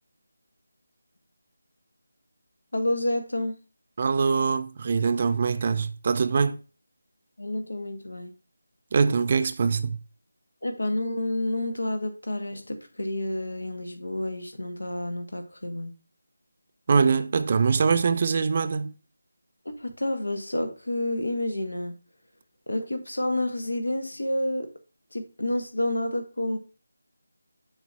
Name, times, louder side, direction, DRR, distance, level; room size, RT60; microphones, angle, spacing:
voice 1, 2.7-3.6 7.4-8.3 10.6-15.9 19.6-21.9 22.7-24.7 25.1-26.6, left 1 dB, 80° left, 1.7 m, -29 dB
voice 2, 4.0-6.6 8.9-10.0 16.9-18.9, right 5 dB, 35° right, 0.5 m, -23 dB
6.7 x 3.1 x 5.9 m
figure-of-eight pair, 160°, 0 cm